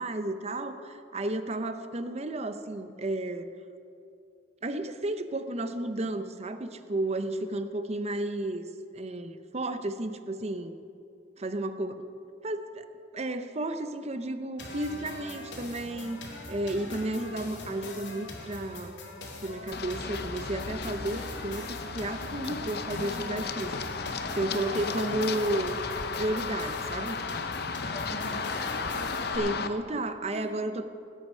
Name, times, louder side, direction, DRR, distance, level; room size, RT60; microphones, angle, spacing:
voice 1, 0.0-3.5 4.6-8.6 8.9-10.8 11.4-12.1 12.4-12.9 13.1-19.0 19.4-23.8 24.0-25.8 26.2-27.2 29.3-30.9, right 1 dB, 35° right, 9 dB, 0.7 m, -32 dB
sound 1, 14.6-29.4, left 2 dB, 80° left, 2.4 m, -42 dB
Run, 19.7-29.7, left 4 dB, 60° left, 0.7 m, -34 dB
voice 2, 24.4-24.8 27.8-29.0 30.3-30.8, left 1 dB, 35° left, 0 dB, 2.0 m, -44 dB
19.0 x 8.2 x 5.5 m, 2.5 s
head